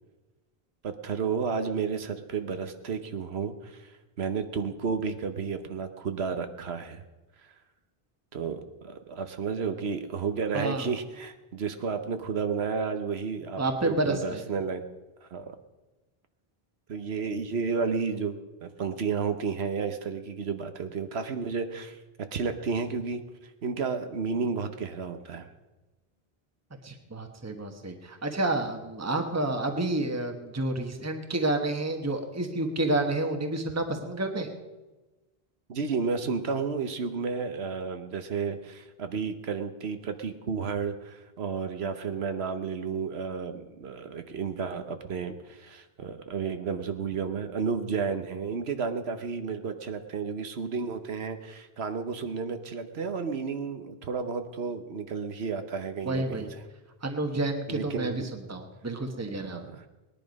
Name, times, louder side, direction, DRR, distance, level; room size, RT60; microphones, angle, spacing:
voice 1, 0.8-3.9 4.2-7.0 8.3-14.8 15.2-15.5 16.9-22.0 22.3-23.2 23.6-25.5 35.7-56.5 57.7-58.3 59.4-59.8, right 5 dB, 85° right, 8 dB, 1.3 m, -32 dB
voice 2, 10.5-10.9 13.6-14.4 26.8-34.5 56.0-56.5 57.0-59.6, right 2 dB, 15° right, 4 dB, 1.2 m, -29 dB
19.0 x 10.5 x 5.3 m, 1.1 s
omnidirectional pair, 1.0 m